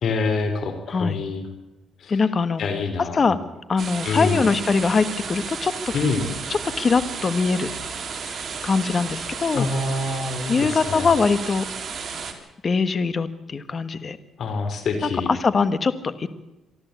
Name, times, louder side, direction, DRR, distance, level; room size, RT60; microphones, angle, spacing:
voice 1, 0.0-1.5 2.0-2.2 2.6-3.4 4.0-4.5 5.9-6.3 9.5-11.1 14.4-15.3, left 3 dB, 60° left, 8 dB, 3.6 m, -26 dB
voice 2, 0.9-1.2 2.1-2.6 3.1-3.4 3.7-5.7 6.5-7.7 8.6-9.6 10.5-11.6 12.6-14.2 15.3-16.3, left 4 dB, 40° left, 13 dB, 1.4 m, -22 dB
sound 1, 3.8-12.3, right 5 dB, 45° right, 3.4 m, -33 dB
24.5 x 13.5 x 8.3 m, 0.97 s
cardioid pair, 90°, 0 cm